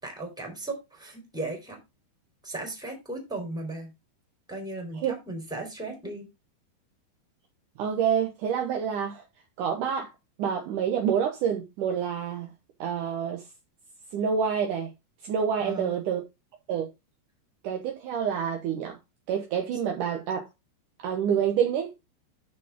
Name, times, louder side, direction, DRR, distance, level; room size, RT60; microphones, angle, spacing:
voice 1, 0.0-1.8 2.4-3.9 4.5-6.3 15.6-15.9, right 2 dB, ahead, 2.8 m, -36 dB
voice 2, 7.8-9.2 9.6-10.1 10.4-12.5 12.8-13.4 14.1-14.9 15.2-16.2 16.7-16.9 17.6-18.9 19.3-20.4 21.0-21.9, right 8 dB, 80° right, 1.8 m, -27 dB
12.5 x 5.3 x 3.6 m
omnidirectional pair, 5.3 m